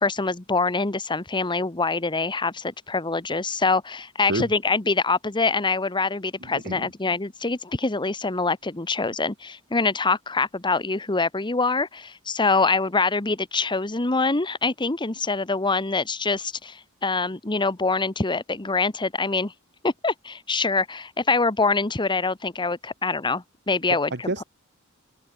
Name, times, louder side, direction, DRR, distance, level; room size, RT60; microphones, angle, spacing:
voice 1, 0.0-19.5 19.8-24.1, left 3 dB, 20° left, 1.2 m, -25 dB
voice 2, 6.4-6.9 23.9-24.4, right 2 dB, 55° right, 2.4 m, -29 dB
head